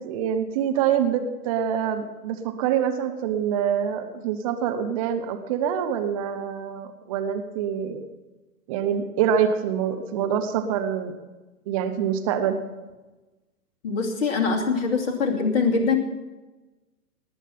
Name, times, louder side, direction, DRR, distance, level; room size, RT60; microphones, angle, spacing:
voice 1, 0.0-8.1 8.7-11.2 11.7-12.6, right 8 dB, 20° right, 7 dB, 0.8 m, -25 dB
voice 2, 13.8-16.0, left 4 dB, 40° left, 1 dB, 2.7 m, -23 dB
19.0 x 8.1 x 5.9 m, 1.1 s
figure-of-eight pair, 125°, 47 cm